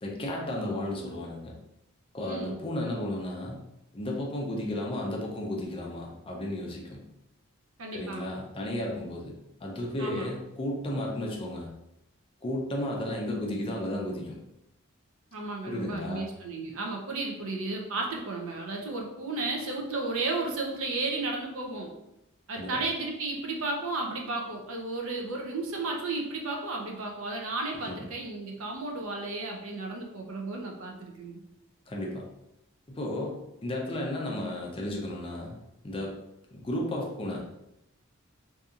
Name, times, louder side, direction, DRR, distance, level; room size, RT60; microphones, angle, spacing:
voice 1, 0.0-1.6 2.1-3.6 3.9-7.0 7.9-11.7 12.4-14.4 15.7-16.3 22.6-22.8 27.9-28.0 31.9-32.3 32.9-35.6 35.8-36.2 36.5-37.6, left 1 dB, 25° left, -1 dB, 0.4 m, -33 dB
voice 2, 2.3-2.6 7.8-8.2 10.0-10.3 15.3-21.9 22.5-31.4, right 3 dB, 70° right, 1 dB, 0.6 m, -33 dB
2.7 x 2.6 x 2.4 m, 0.86 s
head